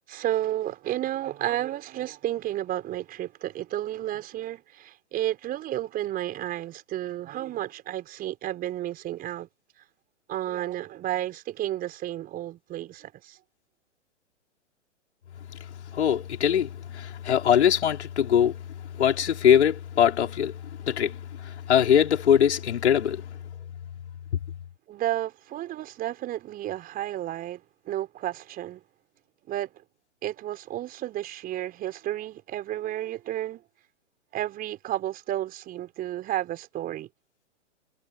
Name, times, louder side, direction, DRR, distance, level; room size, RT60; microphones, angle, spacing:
voice 1, 0.1-9.5 10.3-13.4 24.9-28.8 29.5-29.7 30.2-33.6 34.3-37.1, right 13 dB, 25° right, 4.5 m, -32 dB
voice 2, 15.9-18.5 19.0-20.5 20.9-21.2 21.4-23.2, left 9 dB, 60° left, 5.0 m, -22 dB
figure-of-eight pair, 120°, 38 cm